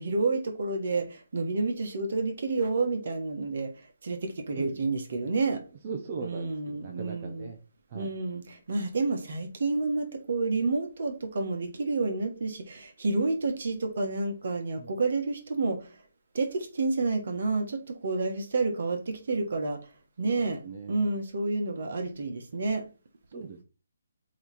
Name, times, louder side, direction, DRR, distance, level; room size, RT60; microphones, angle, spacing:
voice 1, 0.0-5.6 6.2-7.5 7.9-15.9 16.3-19.8 20.2-20.6 20.9-22.8, right 3 dB, 60° right, 6 dB, 1.5 m, -29 dB
voice 2, 5.8-7.6 7.9-8.1 14.8-14.9 20.2-21.1 23.3-23.6, right 5 dB, 40° right, 2 dB, 1.0 m, -40 dB
7.7 x 3.3 x 4.3 m, 0.34 s
figure-of-eight pair, 150°, 0 cm